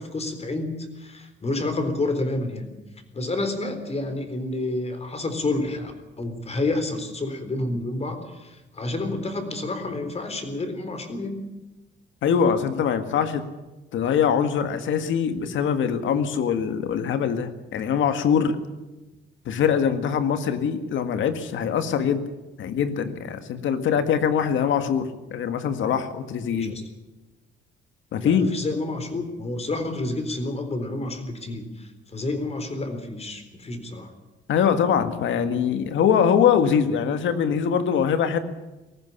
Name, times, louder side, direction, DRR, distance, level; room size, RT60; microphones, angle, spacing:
voice 1, 0.0-2.7 3.1-11.4 26.5-26.8 28.2-34.1, left 2 dB, 30° left, 8 dB, 3.9 m, -29 dB
voice 2, 12.2-13.5 13.9-18.6 19.5-22.2 22.6-26.7 28.1-28.5 34.5-38.4, left 7 dB, 75° left, 9 dB, 1.8 m, -23 dB
18.5 x 14.5 x 9.8 m, 1.1 s
cardioid pair, 90°, 20 cm